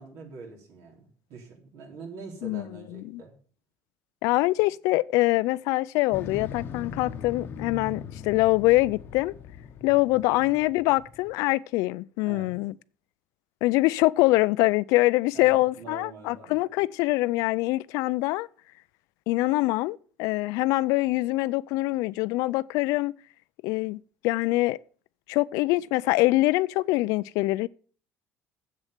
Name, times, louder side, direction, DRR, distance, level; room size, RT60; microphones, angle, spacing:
voice 1, 0.0-3.4 10.1-10.2 12.2-12.5 15.3-16.6, right 4 dB, 65° right, 3.8 m, -44 dB
voice 2, 4.2-9.3 9.8-12.7 13.6-18.5 19.3-23.1 23.6-24.8 25.3-27.7, left 20 dB, 75° left, 0.4 m, -24 dB
Motorcycle, 6.1-11.3, left 5 dB, 40° left, 0.9 m, -40 dB
7.9 x 7.4 x 8.0 m
cardioid pair, 160°, 6 cm